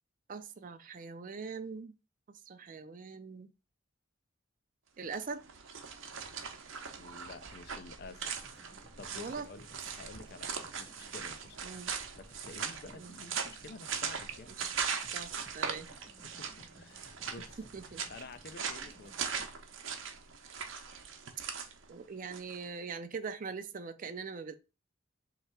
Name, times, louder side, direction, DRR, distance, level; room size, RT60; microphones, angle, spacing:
voice 1, 0.3-1.9 2.5-3.5 5.0-5.5 9.1-9.5 9.8-10.0 11.6-11.9 12.9-13.2 14.6-14.7 15.1-15.9 17.6-18.0 21.9-24.5, right 5 dB, 40° right, 0.5 m, -42 dB
sound 1, 5.0-22.6, right 6 dB, 75° right, 0.7 m, -40 dB
voice 2, 7.0-8.4 8.7-9.7 9.9-11.7 12.2-14.5 16.2-19.5, left 4 dB, 50° left, 0.4 m, -51 dB
sound 2, 8.4-20.6, right 1 dB, 25° left, 1.0 m, -59 dB
3.3 x 3.0 x 4.5 m
head